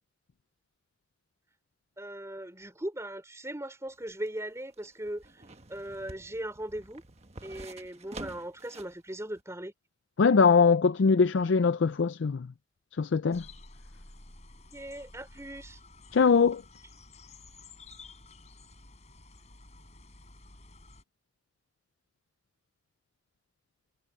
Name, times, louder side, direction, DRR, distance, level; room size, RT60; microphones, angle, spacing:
voice 1, 2.0-5.4 5.7-7.0 7.4-9.7 14.7-15.8, right 1 dB, 15° right, 3.3 m, -39 dB
sound 1, 3.9-9.0 9.4-9.5, right 2 dB, 35° right, 1.3 m, -48 dB
voice 2, 10.2-12.5 13.0-13.4 16.1-16.6, left 5 dB, 75° left, 0.5 m, -22 dB
sound 2, 13.3-21.0, left 2 dB, 35° left, 4.9 m, -52 dB
head